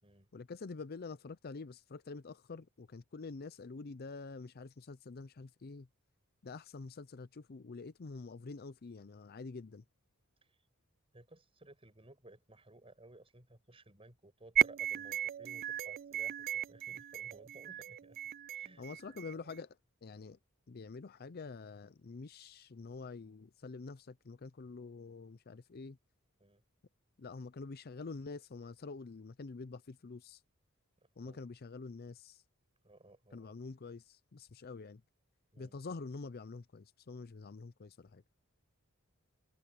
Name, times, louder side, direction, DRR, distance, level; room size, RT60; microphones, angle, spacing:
voice 1, 0.3-5.9 6.4-9.8 18.8-20.4 20.7-26.0 27.2-30.4 31.2-32.4 33.3-35.0 35.6-38.2, left 4 dB, 45° left, 0.5 m, -47 dB
voice 2, 11.1-18.2 18.5-18.8 26.4-26.6 31.0-31.4 32.8-33.5 35.5-35.8, right 2 dB, 25° right, 5.9 m, -58 dB
sound 1, 14.6-19.6, right 10 dB, 45° right, 0.3 m, -36 dB
head